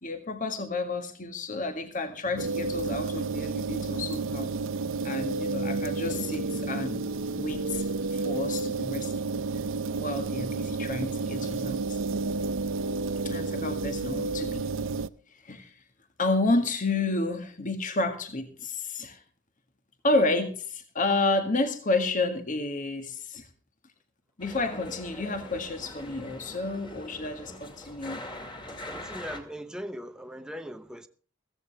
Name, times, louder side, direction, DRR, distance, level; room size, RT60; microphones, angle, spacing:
voice 1, 0.0-4.5 5.0-7.0 7.4-7.8 8.1-9.1 10.0-12.0 13.2-14.6 15.4-15.7 16.2-19.2 20.0-23.5 24.4-28.2, left 2 dB, 45° left, 1.8 m, -30 dB
sound 1, 2.4-15.1, right 3 dB, 90° right, 0.6 m, -31 dB
sound 2, 24.4-29.4, left 1 dB, 25° left, 2.5 m, -42 dB
voice 2, 28.9-31.1, equal, 5° right, 0.8 m, -39 dB
15.5 x 15.0 x 3.4 m
head